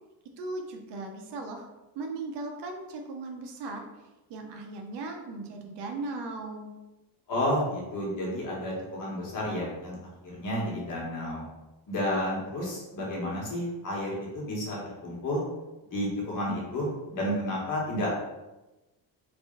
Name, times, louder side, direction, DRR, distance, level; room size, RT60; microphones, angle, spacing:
voice 1, 0.4-1.7 1.9-3.9 4.3-6.7, right 3 dB, 70° right, 3 dB, 0.7 m, -37 dB
voice 2, 7.3-10.0 10.3-11.4 11.9-15.4 15.9-18.1, left 1 dB, 45° left, -4 dB, 1.4 m, -31 dB
3.4 x 2.5 x 3.7 m, 1.0 s
cardioid pair, 135°, 42 cm